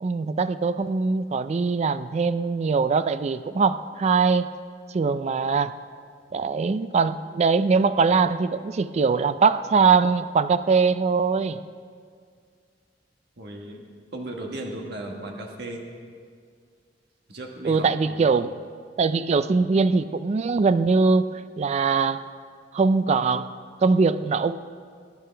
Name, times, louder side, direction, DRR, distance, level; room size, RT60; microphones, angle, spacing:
voice 1, 0.0-4.5 4.9-5.7 6.3-11.6 17.6-18.5 19.0-21.3 21.6-22.2 22.7-23.5 23.8-24.6, right 4 dB, 40° right, 13 dB, 0.3 m, -22 dB
voice 2, 13.4-13.9 14.1-15.8 17.3-18.4, right 1 dB, 65° right, 1 dB, 1.4 m, -36 dB
21.5 x 10.5 x 3.4 m, 2.1 s
head